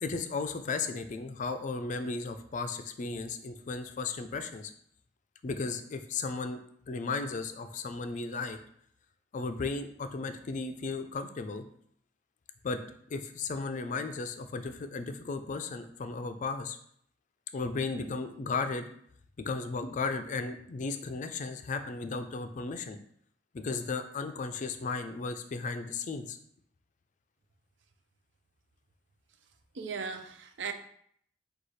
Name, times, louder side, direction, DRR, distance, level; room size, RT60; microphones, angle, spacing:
voice 1, 0.0-4.7 5.4-6.6 6.9-8.6 9.3-11.6 12.6-12.8 13.1-16.8 17.5-18.9 19.4-23.0 23.5-26.4, left 4 dB, 45° left, 8 dB, 0.4 m, -35 dB
voice 2, 29.8-30.7, right 5 dB, 75° right, 7 dB, 0.5 m, -37 dB
4.8 x 2.3 x 4.1 m, 0.65 s
head